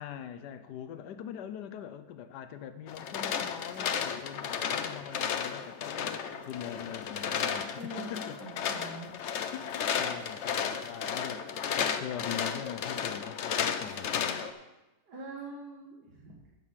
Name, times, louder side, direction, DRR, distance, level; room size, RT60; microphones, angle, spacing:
voice 1, 0.0-8.4 9.5-14.3, left 9 dB, 85° left, 10 dB, 1.3 m, -42 dB
sound 1, 2.9-14.5, left 7 dB, 60° left, 0.8 m, -33 dB
voice 2, 7.8-9.1 15.0-16.6, right 2 dB, 80° right, -3 dB, 2.2 m, -44 dB
10.5 x 6.4 x 7.3 m, 1.0 s
omnidirectional pair, 1.7 m